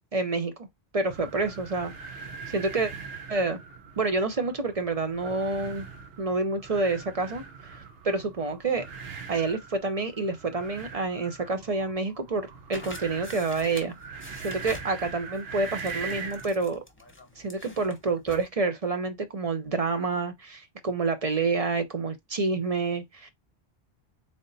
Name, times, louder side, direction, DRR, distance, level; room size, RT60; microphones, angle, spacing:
voice 1, 0.1-0.7 0.9-2.9 3.3-3.6 4.0-5.9 6.2-8.9 9.3-13.9 14.4-16.8 17.4-23.3, right 3 dB, 40° right, 0.6 m, -28 dB
sound 1, 1.0-16.5, right 5 dB, 75° right, 1.1 m, -42 dB
sound 2, 12.7-18.5, left 2 dB, 15° left, 0.8 m, -46 dB
3.9 x 3.5 x 2.6 m
omnidirectional pair, 1.0 m